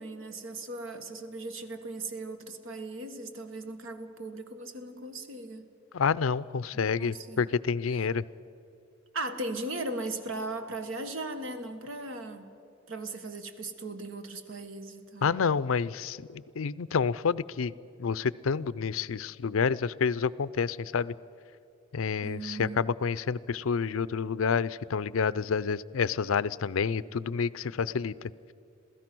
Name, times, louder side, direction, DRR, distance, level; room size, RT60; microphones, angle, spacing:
voice 1, 0.0-5.6 6.7-7.4 9.1-12.5 12.9-15.3 22.2-22.8, right 2 dB, 70° right, 8 dB, 1.5 m, -38 dB
voice 2, 5.9-8.2 15.2-17.7 18.0-21.1 21.9-28.3, left 6 dB, 80° left, 19 dB, 0.5 m, -29 dB
27.5 x 16.5 x 6.1 m, 2.6 s
head